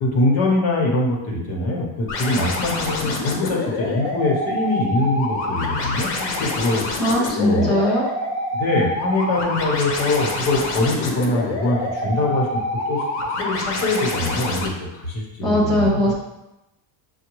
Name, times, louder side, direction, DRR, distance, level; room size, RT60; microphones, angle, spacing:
voice 1, 0.0-6.8 7.4-7.7 8.5-13.0 13.4-16.1, left 2 dB, 55° left, -1 dB, 1.2 m, -23 dB
sound 1, 2.1-14.7, left 2 dB, 90° left, 1.0 m, -26 dB
voice 2, 7.0-8.1 15.4-16.1, equal, ahead, -6 dB, 0.6 m, -19 dB
6.4 x 2.3 x 3.1 m, 0.93 s
cardioid pair, 145°, 44 cm